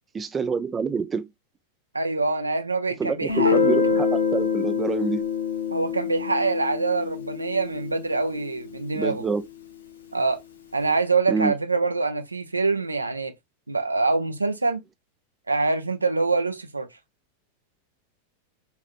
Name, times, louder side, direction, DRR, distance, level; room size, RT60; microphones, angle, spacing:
voice 1, 0.1-1.3 3.0-5.2 8.9-9.4 11.3-11.5, right 5 dB, 20° right, 0.4 m, -27 dB
voice 2, 1.9-3.6 5.7-9.2 10.1-10.4 10.7-13.3 13.7-14.8 15.5-16.9, right 3 dB, 80° right, 0.5 m, -25 dB
Guitar, 3.3-8.8, left 6 dB, 70° left, 0.7 m, -25 dB
4.1 x 2.5 x 2.4 m
figure-of-eight pair, 90°, 0 cm